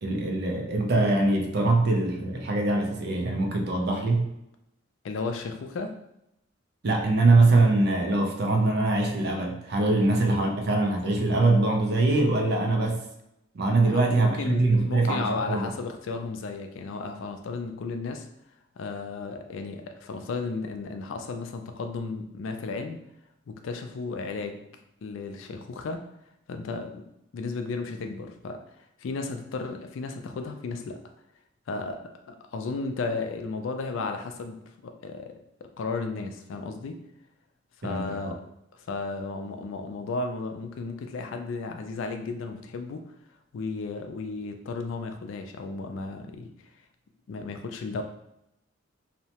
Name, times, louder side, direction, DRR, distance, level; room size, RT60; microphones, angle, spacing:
voice 1, 0.0-4.3 6.8-13.0 13.5-15.7 37.8-38.3, right 2 dB, 55° right, 3 dB, 0.4 m, -23 dB
voice 2, 5.0-5.9 9.9-10.1 13.8-18.3 18.8-23.0 23.5-24.6 25.0-26.0 26.5-27.0 27.3-28.6 29.0-31.0 31.7-32.0 32.3-35.3 35.8-37.0 37.8-38.4 38.8-43.0 43.5-46.5 47.3-48.0, left 3 dB, 85° left, 5 dB, 0.4 m, -34 dB
2.7 x 2.1 x 2.8 m, 0.82 s
head